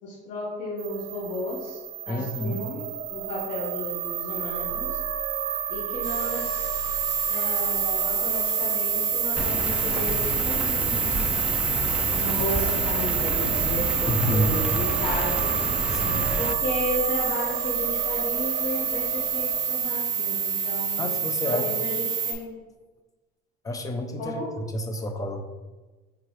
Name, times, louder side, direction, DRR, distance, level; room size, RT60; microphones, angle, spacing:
voice 1, 0.0-1.8 2.1-5.0 5.7-6.8 7.3-11.2 12.1-15.5 16.4-22.6 24.2-24.5, left 1 dB, 65° left, -7 dB, 1.8 m, -33 dB
sound 1, 0.8-19.8, right 9 dB, 75° right, 0.7 m, -32 dB
voice 2, 2.1-2.6 14.1-14.5 15.9-16.3 21.0-21.7 23.6-24.4 24.7-25.4, equal, 15° left, 4 dB, 0.7 m, -28 dB
sound 2, 6.0-22.3, right 6 dB, 40° right, 1.9 m, -27 dB
Rain, 9.4-16.5, right 1 dB, 5° right, 0.3 m, -31 dB
8.5 x 3.7 x 3.3 m, 1.2 s
cardioid pair, 135°, 21 cm